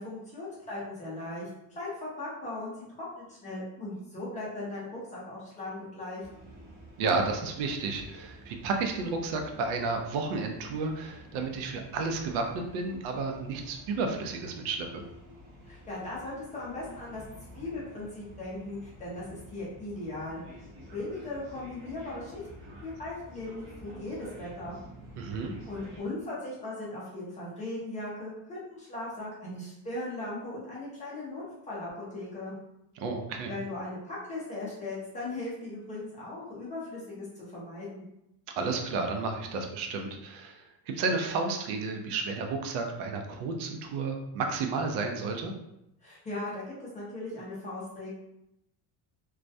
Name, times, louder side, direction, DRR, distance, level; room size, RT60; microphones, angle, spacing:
voice 1, 0.0-1.5 1.8-6.3 15.7-17.2 17.5-20.6 20.9-24.8 25.7-32.5 33.5-38.0 46.0-48.1, left 2 dB, 20° left, -6 dB, 0.4 m, -38 dB
sound 1, 6.2-26.0, equal, 30° right, 0.6 m, -50 dB
voice 2, 7.0-15.0 25.2-25.5 33.0-33.5 38.6-45.5, right 4 dB, 75° right, 4 dB, 0.5 m, -32 dB
2.3 x 2.1 x 2.6 m, 0.84 s
cardioid pair, 175°, 41 cm